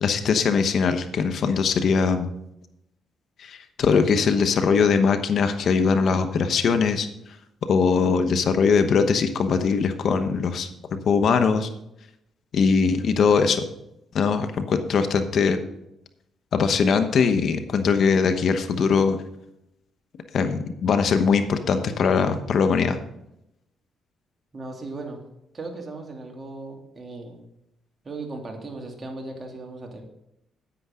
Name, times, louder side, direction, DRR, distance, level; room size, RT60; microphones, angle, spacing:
voice 1, 0.0-2.3 3.4-7.1 7.7-10.7 11.1-11.7 12.5-13.7 14.1-15.6 16.5-19.2 20.3-23.0, left 5 dB, 60° left, 8 dB, 1.0 m, -21 dB
voice 2, 24.5-25.2 25.5-27.4 28.0-30.0, right 3 dB, 30° right, 2 dB, 2.6 m, -37 dB
10.0 x 9.5 x 3.7 m, 0.82 s
cardioid pair, 90°, 0 cm